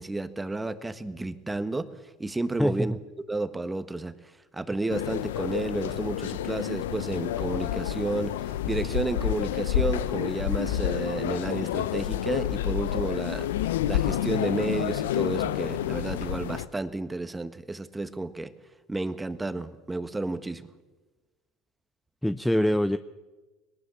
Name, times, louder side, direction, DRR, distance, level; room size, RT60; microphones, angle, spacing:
voice 1, 0.0-1.9 2.2-2.9 3.3-4.1 4.5-8.4 8.7-13.5 13.9-18.5 18.9-20.7, right 2 dB, 15° right, 12 dB, 1.5 m, -31 dB
voice 2, 2.6-3.0 22.2-23.0, equal, 5° left, 13 dB, 0.6 m, -24 dB
sound 1, 4.9-16.7, left 11 dB, 75° left, 0.7 m, -29 dB
21.5 x 19.0 x 7.2 m, 1.2 s
hypercardioid pair, 70°, 0 cm